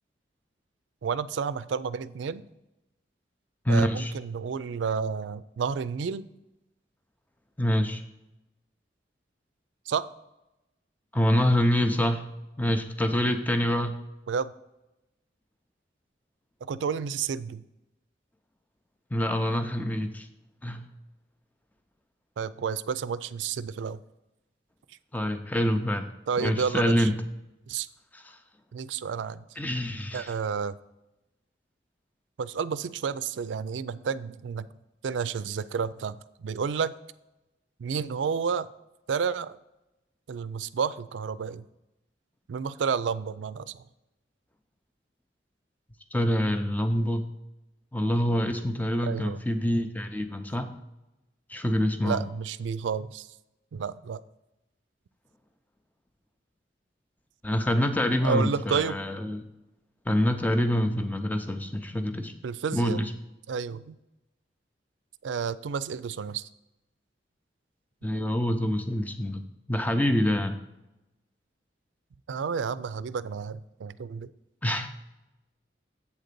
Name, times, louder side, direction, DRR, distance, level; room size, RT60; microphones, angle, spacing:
voice 1, 1.0-2.4 3.7-6.2 9.9-10.1 14.3-14.5 16.6-17.6 22.4-24.0 26.3-27.1 27.7-27.9 28.7-29.4 30.1-30.8 32.4-34.7 35.0-36.2 36.4-36.9 37.8-38.7 39.1-39.6 40.3-41.6 42.5-43.8 49.0-49.4 52.0-53.3 53.7-54.2 58.2-59.0 62.4-63.0 63.5-64.0 65.2-66.4 72.3-74.3, right 6 dB, 85° right, 16 dB, 0.4 m, -30 dB
voice 2, 3.7-4.1 7.6-8.0 11.1-12.2 12.6-14.0 19.1-20.3 20.6-20.9 25.1-26.1 26.4-27.1 28.1-28.4 29.6-30.3 46.1-47.2 47.9-50.7 51.5-52.2 57.4-59.4 60.1-62.3 62.7-63.1 68.0-69.4 69.7-70.6 74.6-74.9, equal, 10° left, 7 dB, 0.5 m, -26 dB
8.3 x 3.9 x 6.7 m, 0.93 s
head